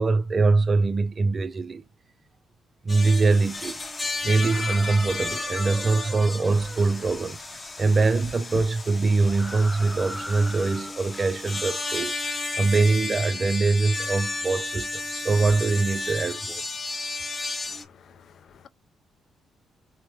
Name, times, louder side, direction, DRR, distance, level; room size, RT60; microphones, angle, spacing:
voice 1, 0.0-1.8 2.8-3.8 4.2-7.4 7.8-16.6, right 3 dB, 35° right, 0.4 m, -23 dB
sound 1, 2.9-17.8, left 3 dB, 25° left, 0.8 m, -33 dB
sound 2, 4.4-6.9 9.2-12.1, equal, 5° right, 0.8 m, -40 dB
voice 2, 17.7-18.7, left 7 dB, 65° left, 0.3 m, -53 dB
3.1 x 2.0 x 3.1 m
cardioid pair, 95°, 0 cm